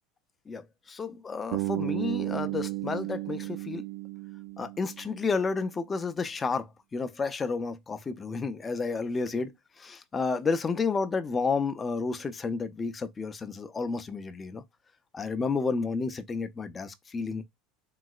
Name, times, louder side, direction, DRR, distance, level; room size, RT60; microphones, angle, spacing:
voice 1, 0.5-3.9 4.6-14.6 15.1-17.4, left 4 dB, 20° left, 0.4 m, -31 dB
Bass guitar, 1.5-5.5, right 21 dB, 70° right, 0.3 m, -34 dB
3.8 x 2.0 x 2.3 m
supercardioid pair, 135°, 0 cm